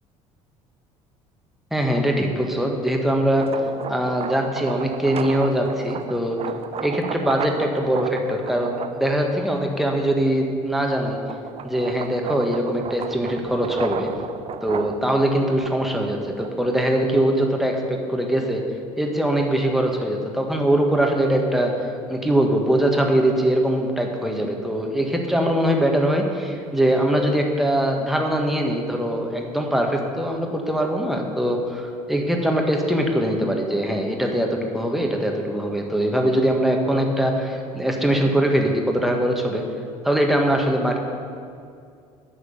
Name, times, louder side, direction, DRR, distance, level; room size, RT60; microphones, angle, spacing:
voice 1, 1.7-3.4 3.9-6.4 6.8-11.2 11.6-14.1 14.6-18.6 19.0-39.6 40.0-41.0, right 1 dB, ahead, 1 dB, 1.7 m, -22 dB
sound 1, 3.2-9.8 10.3-17.5, right 7 dB, 35° right, 0.6 m, -34 dB
9.8 x 6.7 x 6.8 m, 2.3 s
hypercardioid pair, 65°, 17 cm